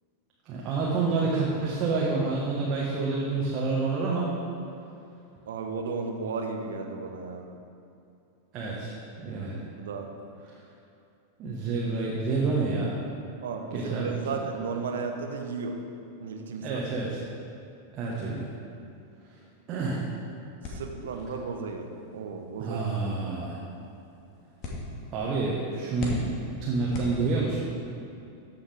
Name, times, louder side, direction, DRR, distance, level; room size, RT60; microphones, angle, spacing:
voice 1, 0.4-4.3 8.5-9.6 11.4-13.0 13.7-14.1 16.6-17.2 17.9-18.5 19.7-20.1 22.6-23.6 25.1-27.7, right 3 dB, 35° right, -4 dB, 1.3 m, -28 dB
voice 2, 5.5-7.5 9.8-10.1 13.4-15.8 16.2-16.8 20.7-22.8, right 4 dB, 60° right, 4 dB, 0.9 m, -34 dB
sound 1, 20.6-27.7, left 1 dB, 40° left, 1.7 m, -41 dB
14.0 x 5.7 x 3.5 m, 2.7 s
figure-of-eight pair, 90°, 0 cm